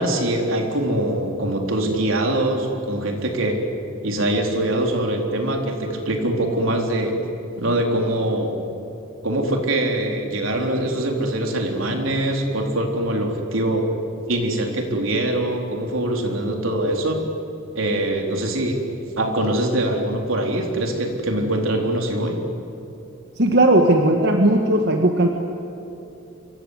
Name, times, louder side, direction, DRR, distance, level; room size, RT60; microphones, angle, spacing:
voice 1, 0.0-3.6 4.0-7.2 7.6-8.6 9.2-13.9 14.3-17.3 17.7-18.9 19.2-22.4, right 1 dB, 75° right, 2 dB, 4.0 m, -23 dB
voice 2, 23.4-25.3, right 1 dB, 55° right, 3 dB, 1.8 m, -17 dB
27.0 x 25.0 x 8.3 m, 2.9 s
head